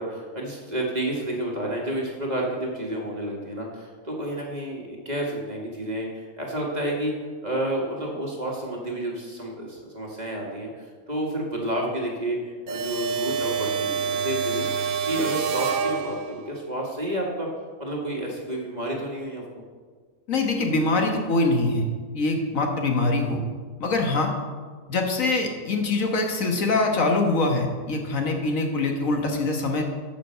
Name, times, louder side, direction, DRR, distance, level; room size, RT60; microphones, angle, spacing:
voice 1, 0.0-7.1 7.4-14.6 15.0-17.5 17.8-19.4, right 1 dB, 30° right, -2 dB, 2.0 m, -30 dB
sound 1, 12.7-16.6, right 6 dB, 85° right, 1.3 m, -27 dB
voice 2, 20.3-21.9 22.1-23.4 23.8-24.3 24.9-29.8, left 2 dB, 65° left, 2 dB, 1.7 m, -23 dB
9.0 x 7.4 x 6.6 m, 1.5 s
omnidirectional pair, 1.5 m